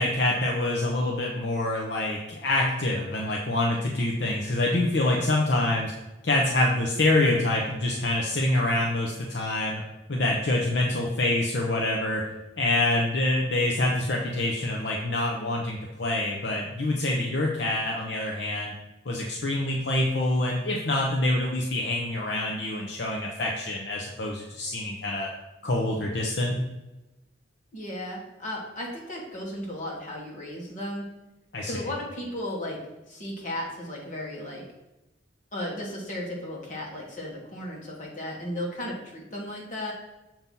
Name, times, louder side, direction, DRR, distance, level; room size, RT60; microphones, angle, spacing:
voice 1, 0.0-5.9 6.2-9.8 10.1-12.2 12.6-18.7 19.1-25.3 25.6-26.6 31.5-31.8, left 2 dB, 65° left, -1 dB, 0.8 m, -26 dB
voice 2, 27.7-31.1 31.6-32.8 33.1-34.6 35.5-39.9, left 1 dB, 40° left, -3 dB, 1.6 m, -35 dB
6.9 x 3.0 x 5.4 m, 1.0 s
head